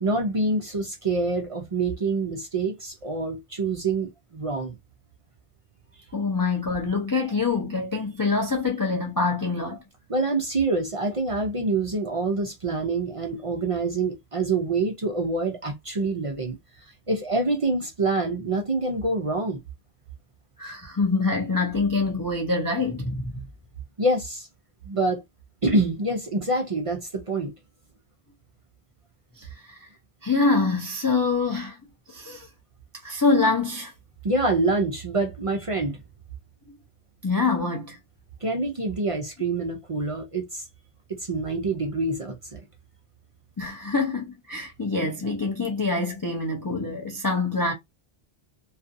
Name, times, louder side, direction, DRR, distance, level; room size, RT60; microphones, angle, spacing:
voice 1, 0.0-4.8 10.1-16.6 17.1-19.6 24.0-24.5 24.8-25.2 25.6-27.5 34.2-36.0 38.4-40.6 41.2-42.6, right 3 dB, 40° right, 0.5 m, -26 dB
voice 2, 6.1-9.8 20.6-23.4 29.4-29.9 30.2-31.8 32.1-32.5 33.0-33.9 37.2-38.0 43.6-47.7, left 3 dB, 35° left, 0.3 m, -25 dB
2.5 x 2.3 x 2.5 m
omnidirectional pair, 1.1 m